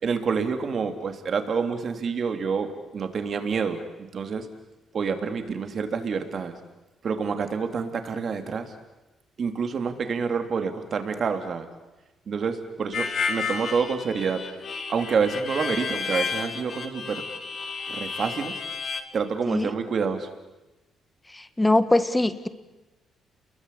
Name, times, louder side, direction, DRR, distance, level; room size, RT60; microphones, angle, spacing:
voice 1, 0.0-4.5 4.9-6.5 7.0-8.7 9.4-11.7 12.3-14.4 14.9-17.2 17.9-18.6 19.1-20.3, right 5 dB, 50° right, 7 dB, 3.1 m, -28 dB
Harmonica, 12.9-19.0, left 5 dB, 50° left, 2.8 m, -31 dB
voice 2, 21.3-22.5, left 2 dB, 10° left, 12 dB, 1.7 m, -22 dB
29.0 x 22.0 x 8.5 m, 1.1 s
cardioid pair, 90°, 0 cm